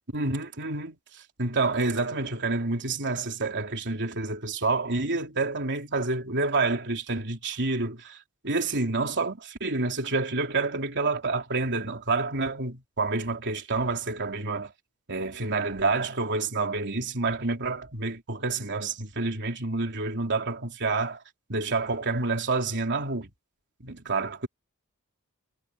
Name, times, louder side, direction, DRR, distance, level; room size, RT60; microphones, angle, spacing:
voice 1, 0.1-8.2 8.4-14.7 15.1-21.2 21.5-23.3 23.8-24.5, right 3 dB, 55° right, 3.6 m, -28 dB
head